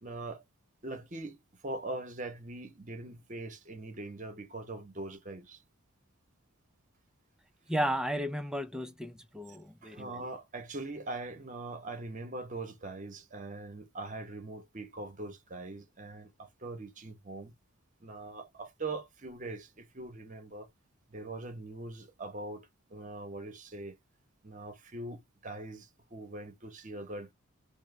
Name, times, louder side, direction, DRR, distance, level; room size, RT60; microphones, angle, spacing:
voice 1, 0.0-0.4 0.8-1.4 1.6-5.6 9.8-17.5 18.0-20.7 21.1-23.9 24.4-27.3, right 2 dB, 35° right, 0.8 m, -42 dB
voice 2, 7.7-10.3, equal, 5° right, 0.4 m, -34 dB
3.1 x 2.1 x 3.1 m
head